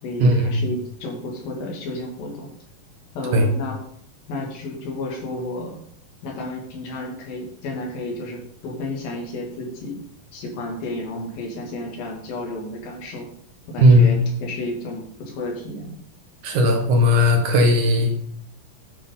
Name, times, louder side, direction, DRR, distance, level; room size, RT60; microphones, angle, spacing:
voice 1, 0.0-2.5 3.1-3.8 4.3-5.8 6.2-10.0 10.3-13.3 13.7-16.0, left 2 dB, 80° left, 0 dB, 3.9 m, -32 dB
voice 2, 13.8-14.1 16.4-18.1, left 1 dB, 65° right, 3 dB, 2.7 m, -16 dB
10.0 x 9.1 x 3.8 m, 0.66 s
omnidirectional pair, 4.1 m